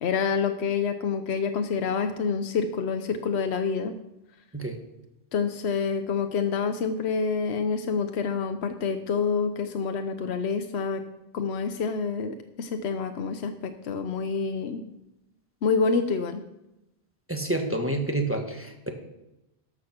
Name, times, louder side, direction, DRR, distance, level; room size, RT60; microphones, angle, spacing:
voice 1, 0.0-4.0 5.3-11.0 11.3-14.8 15.6-16.4, left 5 dB, 75° left, 7 dB, 1.0 m, -27 dB
voice 2, 17.3-18.9, right 2 dB, 10° right, 3 dB, 1.3 m, -28 dB
13.0 x 6.4 x 5.9 m, 0.92 s
omnidirectional pair, 1.1 m